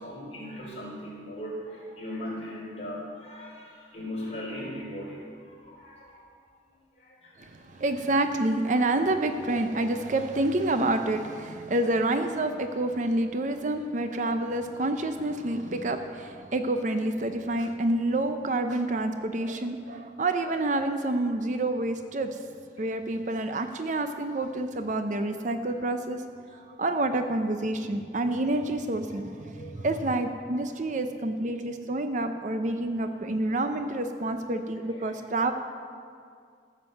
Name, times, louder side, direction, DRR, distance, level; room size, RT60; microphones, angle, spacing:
voice 1, 0.0-5.2 5.4-6.3 7.0-7.8 8.7-8.9 26.5-26.7 29.1-29.2 29.5-29.9 35.0-35.1, equal, 40° left, -5 dB, 3.9 m, -39 dB
voice 2, 7.4-22.4 22.8-26.2 26.8-35.5, right 2 dB, 45° right, 8 dB, 0.6 m, -28 dB
14.0 x 7.4 x 6.5 m, 2.2 s
head